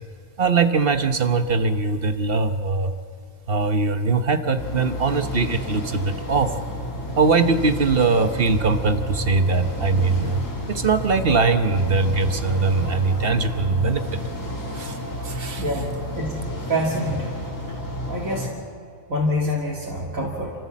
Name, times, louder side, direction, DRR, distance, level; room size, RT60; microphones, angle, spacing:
voice 1, 0.4-2.9 3.5-6.5 7.2-10.4 10.7-14.1 14.7-15.0 15.2-15.6, right 4 dB, 45° right, 9 dB, 1.1 m, -21 dB
sound 1, 4.6-18.5, equal, 70° left, 3.5 m, -31 dB
voice 2, 15.6-15.9 16.2-16.4 16.7-17.3 18.1-18.5 19.1-20.5, left 1 dB, 75° right, -3 dB, 2.7 m, -25 dB
28.5 x 15.0 x 7.4 m, 2.3 s
omnidirectional pair, 1.4 m